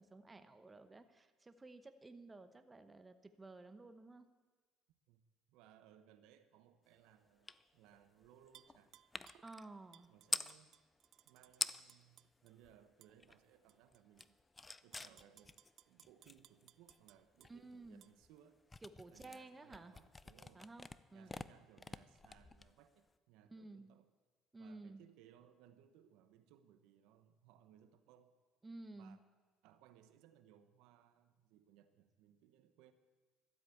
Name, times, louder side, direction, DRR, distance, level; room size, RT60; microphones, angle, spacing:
voice 1, 0.0-4.3 9.4-10.1 17.5-18.1 18.8-19.9 20.5-21.4 23.5-24.0 24.5-25.0 28.6-29.2, right 2 dB, 15° right, 10 dB, 0.9 m, -54 dB
voice 2, 5.5-8.9 10.1-10.8 11.2-14.4 14.8-18.6 19.1-20.7 21.1-24.1 24.6-28.3 28.9-29.2 29.6-32.9, right 10 dB, 85° right, 11 dB, 1.0 m, -66 dB
sound 1, 7.5-7.6 7.9-10.6 11.2-11.3 11.5-12.1 12.4-13.6 13.9-23.1, left 3 dB, 20° left, 0.4 m, -47 dB
Tap / Glass, 8.5-9.5 9.9-12.5 13.0-13.1 13.7-14.3 14.7-17.5 18.0-18.1, right 11 dB, 60° right, 0.3 m, -65 dB
13.0 x 8.3 x 8.4 m, 1.3 s
cardioid pair, 110°, 0 cm